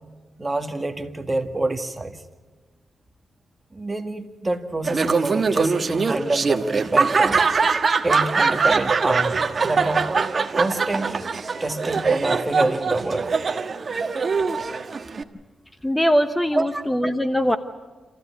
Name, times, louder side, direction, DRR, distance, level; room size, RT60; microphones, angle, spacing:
voice 1, 0.4-2.2 3.7-7.4 8.0-10.1 10.5-11.3 11.6-13.3 16.5-16.8, right 2 dB, 25° right, 6 dB, 2.0 m, -26 dB
Laughter, 4.9-15.2, right 4 dB, 50° right, 1.3 m, -22 dB
voice 2, 15.8-17.6, equal, 10° left, 9 dB, 1.1 m, -21 dB
27.0 x 15.5 x 9.5 m, 1.3 s
cardioid pair, 80°, 0 cm